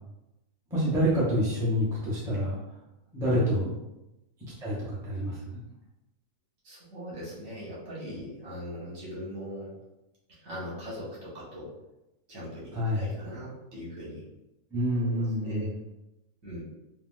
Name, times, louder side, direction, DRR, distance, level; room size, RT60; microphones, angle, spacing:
voice 1, 0.7-2.6 3.1-3.7 4.6-5.6 12.7-13.0 14.7-15.7, equal, 5° right, -8 dB, 0.6 m, -27 dB
voice 2, 3.3-3.7 6.6-9.7 10.3-11.7 12.3-14.3 14.9-15.7 16.4-16.6, equal, 75° right, -8 dB, 1.6 m, -40 dB
3.5 x 2.2 x 2.4 m, 0.96 s
omnidirectional pair, 1.4 m